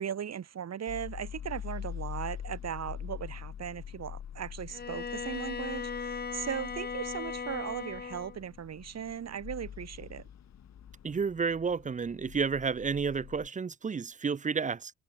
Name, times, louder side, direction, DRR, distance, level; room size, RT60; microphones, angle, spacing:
voice 1, 0.0-10.3, right 8 dB, 55° right, 5.2 m, -38 dB
sound 1, 0.9-13.5, left 9 dB, 55° left, 7.7 m, -44 dB
Bowed string instrument, 4.7-8.4, left 5 dB, 30° left, 1.5 m, -38 dB
voice 2, 11.0-14.9, right 5 dB, 25° right, 0.6 m, -31 dB
hypercardioid pair, 45°, 32 cm